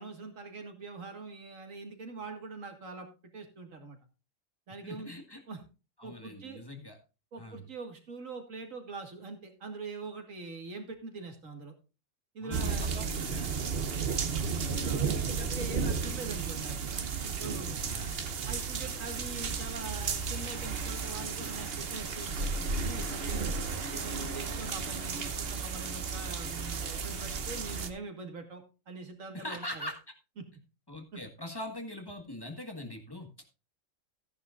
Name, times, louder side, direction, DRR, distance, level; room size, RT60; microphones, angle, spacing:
voice 1, 0.0-3.1 3.3-4.0 4.7-5.1 5.5-5.6 6.0-6.6 7.3-11.7 12.3-13.0 14.7-16.9 17.4-17.8 18.5-23.6 23.9-29.6 30.4-30.5 31.1-31.2, right 4 dB, 85° right, 5 dB, 2.3 m, -43 dB
voice 2, 4.8-5.4 6.0-7.0 7.4-7.7 12.4-13.5 17.8-18.2 29.3-30.0 30.9-33.3, left 1 dB, 20° left, 3 dB, 1.7 m, -42 dB
sound 1, 12.5-27.9, right 5 dB, 50° right, 1.1 m, -33 dB
14.0 x 10.0 x 2.5 m, 0.31 s
omnidirectional pair, 1.3 m